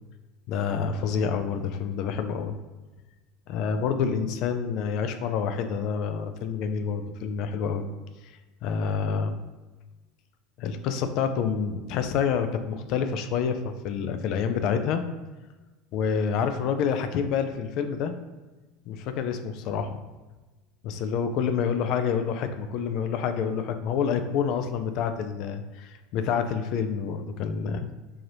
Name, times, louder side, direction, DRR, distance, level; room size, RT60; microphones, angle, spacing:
voice 1, 0.5-2.5 3.5-7.9 8.2-8.3 8.6-9.4 10.6-15.0 15.9-18.1 18.9-20.0 20.8-27.9, left 6 dB, 45° left, 8 dB, 0.3 m, -28 dB
4.7 x 2.6 x 3.0 m, 1.2 s
supercardioid pair, 160°, 0 cm